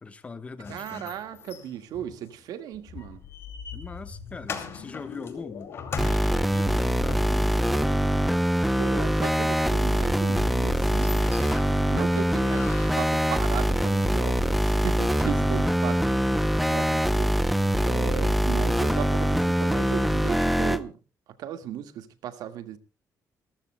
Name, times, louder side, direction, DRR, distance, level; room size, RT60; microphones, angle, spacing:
voice 1, 0.0-1.1 3.7-5.7 6.2-8.1 15.3-15.7, left 4 dB, 20° left, 1.1 m, -41 dB
sound 1, 0.6-7.7 10.1-10.2 10.5-10.6 10.8-11.8 12.5-13.2, left 5 dB, 40° left, 2.5 m, -41 dB
voice 2, 0.7-3.2 8.8-11.2 11.7-16.2 16.7-17.4 17.8-21.0 21.4-22.8, right 10 dB, 75° right, 1.7 m, -36 dB
sound 2, 3.0-7.4 10.2-12.3 17.9-19.2, left 7 dB, 75° left, 3.9 m, -44 dB
sound 3, 6.0-20.8, equal, ahead, 0.6 m, -23 dB
27.5 x 14.0 x 2.2 m
cardioid pair, 165°, 7 cm